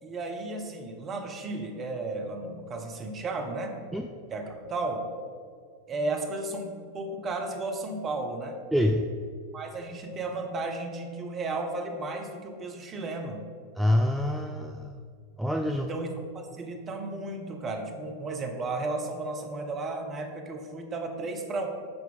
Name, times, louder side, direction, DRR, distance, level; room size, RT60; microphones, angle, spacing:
voice 1, 0.0-3.8 4.3-5.1 5.9-8.6 9.5-13.5 15.7-21.7, right 2 dB, 25° right, 3 dB, 0.9 m, -34 dB
voice 2, 8.7-9.0 13.8-14.9 15.4-15.9, left 1 dB, 5° right, 3 dB, 0.3 m, -26 dB
7.1 x 4.6 x 5.3 m, 2.1 s
figure-of-eight pair, 90°, 0 cm